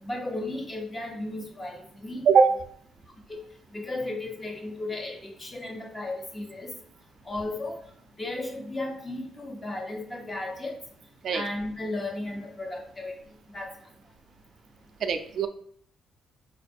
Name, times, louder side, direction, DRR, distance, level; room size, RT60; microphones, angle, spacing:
voice 1, 0.0-2.2 2.5-2.6 3.3-3.4 3.7-6.7 7.3-7.8 8.2-10.8 11.3-13.1 13.5-13.7, left 2 dB, 25° left, 0 dB, 1.2 m, -34 dB
voice 2, 15.0-15.5, right 6 dB, 60° right, 7 dB, 0.4 m, -20 dB
4.2 x 2.5 x 4.4 m, 0.62 s
cardioid pair, 90°, 0 cm